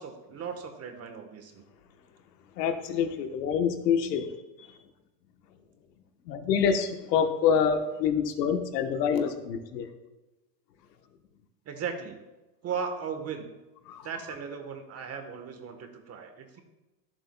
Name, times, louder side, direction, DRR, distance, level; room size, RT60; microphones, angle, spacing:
voice 1, 0.0-1.6 11.7-12.2 12.6-13.5 14.0-16.6, right 6 dB, 30° right, 6 dB, 1.2 m, -37 dB
voice 2, 2.6-4.3 4.6-4.7 6.3-9.9 13.9-14.1, left 7 dB, 90° left, 7 dB, 1.2 m, -26 dB
13.5 x 7.5 x 2.2 m, 1.0 s
supercardioid pair, 125°, 48 cm